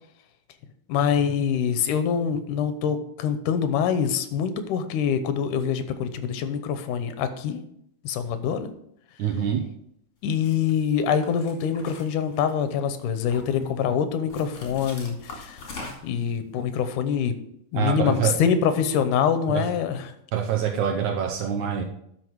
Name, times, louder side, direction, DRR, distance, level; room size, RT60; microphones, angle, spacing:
voice 1, 0.9-7.6 8.0-8.7 10.2-15.6 16.0-17.3 17.7-20.1, left 7 dB, 75° left, 9 dB, 2.3 m, -25 dB
voice 2, 9.2-9.6 17.7-18.4 19.5-19.6 20.3-21.8, right 8 dB, 75° right, 3 dB, 2.1 m, -25 dB
sound 1, 10.4-10.7 11.2-12.7 13.1-13.7 14.3-16.2, left 3 dB, 45° left, 3.4 m, -41 dB
12.0 x 6.1 x 4.6 m, 0.74 s
omnidirectional pair, 3.8 m